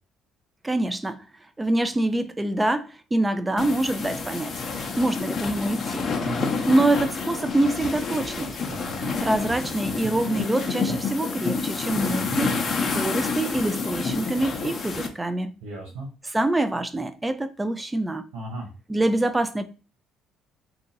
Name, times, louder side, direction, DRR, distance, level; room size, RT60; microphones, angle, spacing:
voice 1, 0.6-1.3 1.6-4.6 5.0-6.1 6.7-8.6 9.2-12.5 12.9-15.5 16.2-18.2 18.9-19.6, right 1 dB, 15° right, 0.4 m, -25 dB
sound 1, 3.6-15.1, left 4 dB, 35° left, 0.7 m, -28 dB
voice 2, 8.7-9.2 12.0-12.5 15.6-16.1 18.3-18.7, right 2 dB, 85° right, 1.2 m, -35 dB
2.7 x 2.5 x 4.0 m
cardioid pair, 105°, 0 cm